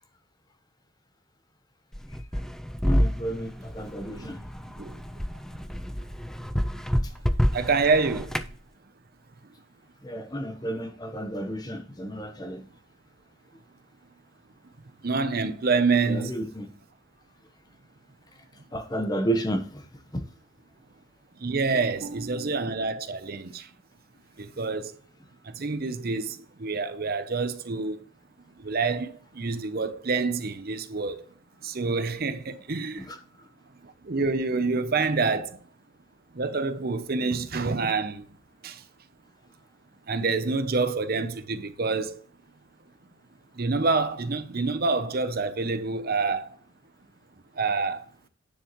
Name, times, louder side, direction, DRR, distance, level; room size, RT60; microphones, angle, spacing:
sound 1, 1.9-8.5, equal, ahead, 0.4 m, -28 dB
voice 1, 2.8-4.4 7.0-7.1 10.0-12.6 16.0-16.7 18.7-20.3 21.7-21.8 32.9-33.2 35.2-35.3, right 1 dB, 20° left, 1.0 m, -32 dB
voice 2, 7.5-8.4 15.0-16.3 21.4-23.7 24.4-24.9 25.4-28.0 28.6-31.2 31.6-33.1 34.0-35.6 36.3-38.2 38.6-38.8 40.1-42.2 43.6-46.6 47.6-48.0, right 4 dB, 45° right, 0.7 m, -27 dB
9.5 x 7.2 x 3.1 m
head